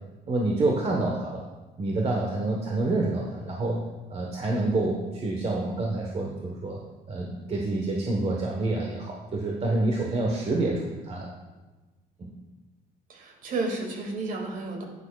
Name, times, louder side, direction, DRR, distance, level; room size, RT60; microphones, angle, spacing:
voice 1, 0.3-1.4 1.8-3.8 4.1-6.8 7.1-11.3 12.2-12.3, right 2 dB, 35° right, -1 dB, 1.2 m, -27 dB
voice 2, 13.1-14.8, right 3 dB, 55° right, 2 dB, 2.2 m, -32 dB
11.0 x 9.6 x 2.4 m, 1.2 s
cardioid pair, 110°, 17 cm